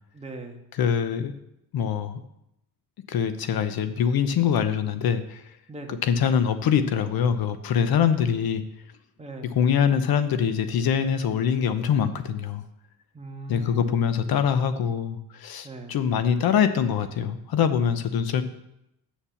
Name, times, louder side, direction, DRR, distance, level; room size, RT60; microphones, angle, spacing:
voice 1, 0.1-0.6 5.7-6.0 9.2-9.5 13.1-14.0 15.6-16.0, right 2 dB, 15° right, 2 dB, 1.6 m, -39 dB
voice 2, 0.8-1.3 1.7-2.2 3.1-5.4 6.0-8.6 9.5-12.6 13.5-18.4, left 7 dB, 65° left, 10 dB, 1.0 m, -24 dB
8.7 x 7.3 x 7.2 m, 0.83 s
cardioid pair, 125°, 40 cm